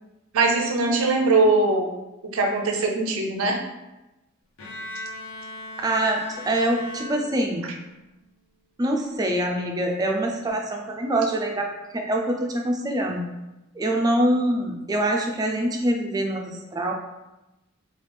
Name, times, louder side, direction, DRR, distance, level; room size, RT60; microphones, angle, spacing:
voice 1, 0.3-1.9 2.3-3.6, right 3 dB, 80° right, 2 dB, 0.5 m, -21 dB
Bowed string instrument, 4.6-7.9, left 1 dB, 80° left, 0.7 m, -38 dB
voice 2, 5.8-7.7 8.8-13.2 13.7-16.9, right 1 dB, 20° right, 2 dB, 0.4 m, -24 dB
3.3 x 2.3 x 3.2 m, 1.0 s
head